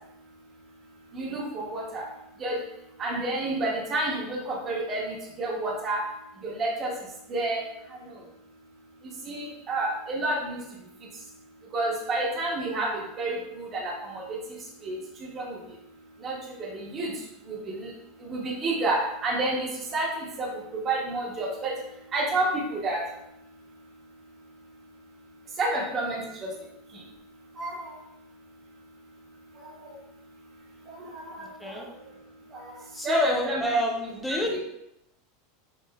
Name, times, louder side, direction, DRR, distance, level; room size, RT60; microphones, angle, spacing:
voice 1, 1.1-2.0 2.4-2.6 3.0-6.0 6.4-6.9 7.3-7.6 9.2-10.6 11.7-12.9 13.2-14.4 14.8-14.9 15.3-15.6 16.2-17.1 17.5-17.9 18.2-19.7 19.9-20.5 20.8-21.7 22.1-23.0 25.6-26.2 27.6-27.9 29.9-30.0 30.9-31.5 31.7-31.8 32.5-32.8 33.0-33.7 34.3-34.4, right 2 dB, 25° right, -2 dB, 0.8 m, -29 dB
voice 2, 31.4-31.9 32.9-34.6, left 1 dB, 5° left, 0 dB, 0.6 m, -28 dB
5.4 x 2.4 x 2.3 m, 0.83 s
supercardioid pair, 155°, 0 cm